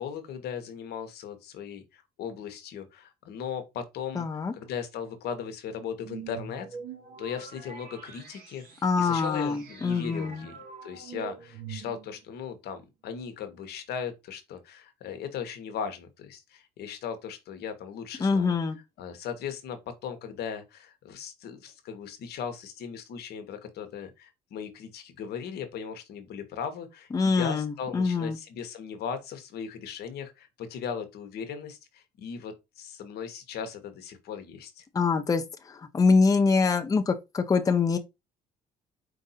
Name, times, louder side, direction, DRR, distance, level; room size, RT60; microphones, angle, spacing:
voice 1, 0.0-6.7 7.2-8.6 8.9-18.5 19.0-34.8, left 7 dB, 70° left, 1.0 m, -38 dB
voice 2, 4.2-4.5 8.8-10.4 18.2-18.8 27.1-28.4 34.9-35.4 35.7-38.0, left 4 dB, 20° left, 0.6 m, -24 dB
sound 1, 6.0-12.3, right 6 dB, 60° right, 2.1 m, -44 dB
4.8 x 2.6 x 4.0 m
cardioid pair, 110°, 17 cm